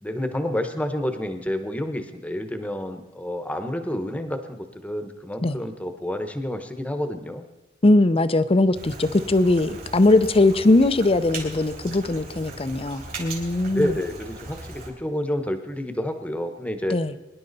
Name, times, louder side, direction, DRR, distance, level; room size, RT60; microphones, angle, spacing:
voice 1, 0.0-7.4 13.6-17.0, left 1 dB, 5° left, 7 dB, 1.1 m, -29 dB
voice 2, 7.8-13.9 16.9-17.1, left 2 dB, 30° left, 12 dB, 0.6 m, -20 dB
Rain, 8.7-14.9, right 3 dB, 50° right, 3.5 m, -39 dB
23.5 x 11.0 x 4.1 m, 1.1 s
head